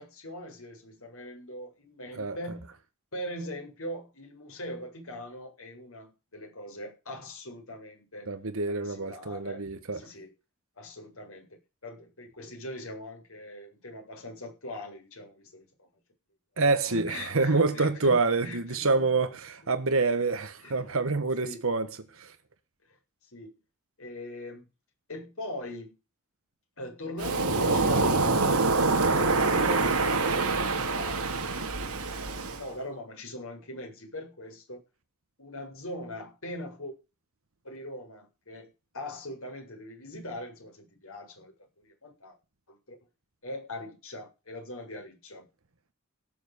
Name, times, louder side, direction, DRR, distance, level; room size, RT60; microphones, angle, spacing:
voice 1, 0.0-2.7 3.1-8.3 8.7-9.6 9.9-10.3 10.8-11.5 11.8-15.9 16.8-19.2 20.6-20.8 21.4-21.6 23.3-23.5 24.0-24.7 25.1-25.9 26.8-31.7 32.0-34.8 35.4-36.9 37.6-41.5 41.8-42.4 42.7-42.8 43.4-45.5, left 1 dB, 65° left, 7.8 m, -41 dB
voice 2, 8.3-10.0 16.6-21.9 22.1-22.3, right 3 dB, 65° right, 1.4 m, -27 dB
Waves surf, 27.2-32.6, right 3 dB, 85° right, 2.5 m, -25 dB
17.5 x 7.3 x 6.9 m
head